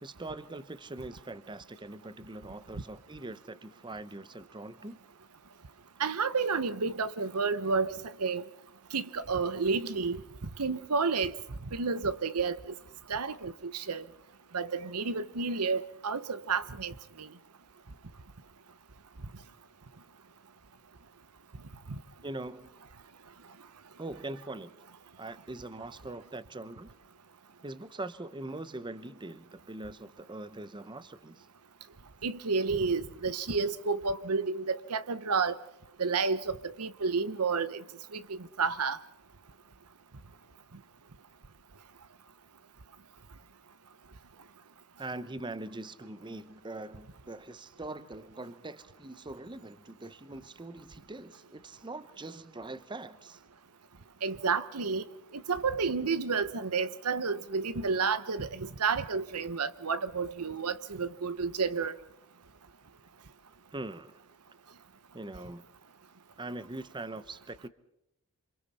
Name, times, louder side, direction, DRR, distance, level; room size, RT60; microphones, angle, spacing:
voice 1, 0.0-5.0 22.2-22.8 24.0-24.7 25.2-26.9 27.6-31.5 45.0-53.4 63.7-64.2 65.1-65.7 66.4-67.7, right 2 dB, 20° right, 0.8 m, -42 dB
voice 2, 6.0-7.9 8.2-8.4 8.9-10.2 10.6-11.3 11.7-12.6 13.1-14.0 14.5-17.3 32.2-35.6 36.0-37.8 38.1-39.0 54.2-55.0 55.5-62.0, right 4 dB, 85° right, 1.0 m, -30 dB
28.0 x 26.5 x 4.3 m
head